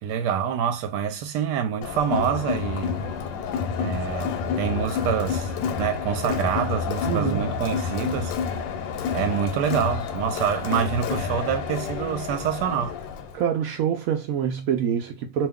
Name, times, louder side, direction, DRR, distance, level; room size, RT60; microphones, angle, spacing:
voice 1, 0.0-3.1 3.8-5.5 5.8-8.4 9.1-13.0, right 8 dB, 70° right, 1.2 m, -26 dB
Crowd, 1.8-13.4, left 6 dB, 80° left, 1.3 m, -29 dB
voice 2, 7.0-7.5 13.3-15.5, right 8 dB, 85° right, 0.7 m, -25 dB
2.9 x 2.2 x 3.5 m
omnidirectional pair, 2.0 m